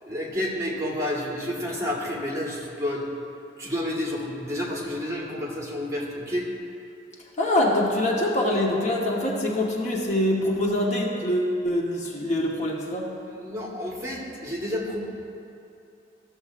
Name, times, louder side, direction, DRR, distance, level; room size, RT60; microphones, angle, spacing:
voice 1, 0.0-3.1 3.6-6.5 13.3-15.1, left 1 dB, 20° right, -4 dB, 1.5 m, -30 dB
voice 2, 7.4-13.1, left 1 dB, 40° left, -3 dB, 1.0 m, -24 dB
14.5 x 7.0 x 2.5 m, 2.7 s
head